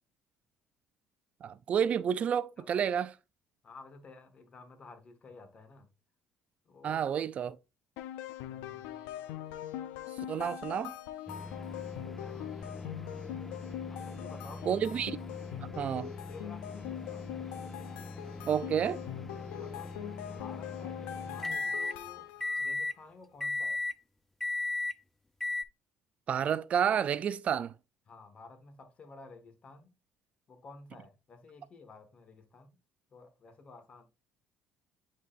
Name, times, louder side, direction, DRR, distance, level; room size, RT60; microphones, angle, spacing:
voice 1, 1.4-3.1 6.8-7.6 10.3-11.0 14.7-15.2 15.8-16.1 18.4-19.0 26.3-27.7, right 8 dB, 50° right, 0.4 m, -30 dB
voice 2, 3.6-5.9 6.7-7.0 8.4-9.1 11.8-13.0 13.9-14.8 16.3-17.6 19.5-22.3 22.6-23.8 28.1-29.9 30.5-32.8 33.1-34.1, left 3 dB, 40° left, 1.6 m, -53 dB
sound 1, 8.0-22.7, left 12 dB, 90° left, 0.5 m, -42 dB
sound 2, 11.3-22.0 22.4-23.0 23.4-24.0 24.4-25.0 25.4-25.6, left 2 dB, 10° left, 0.4 m, -39 dB
9.4 x 4.1 x 2.5 m
supercardioid pair, 85°, 3 cm